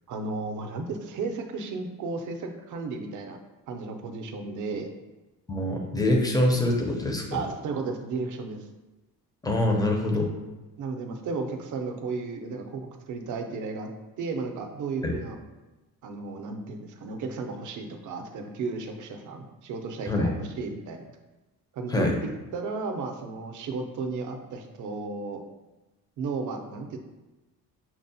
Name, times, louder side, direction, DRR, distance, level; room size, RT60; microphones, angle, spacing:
voice 1, 0.1-3.4 3.7-4.9 7.3-8.7 10.8-13.9 14.2-15.4 16.0-21.0 21.7-22.1 22.5-25.4 26.2-27.0, right 4 dB, 55° right, 4 dB, 0.5 m, -34 dB
voice 2, 5.5-7.4 9.4-10.3 15.0-15.2 20.1-20.3 21.9-22.2, left 1 dB, 10° left, 2 dB, 0.4 m, -24 dB
5.9 x 2.0 x 2.6 m, 1.1 s
cardioid pair, 135°, 36 cm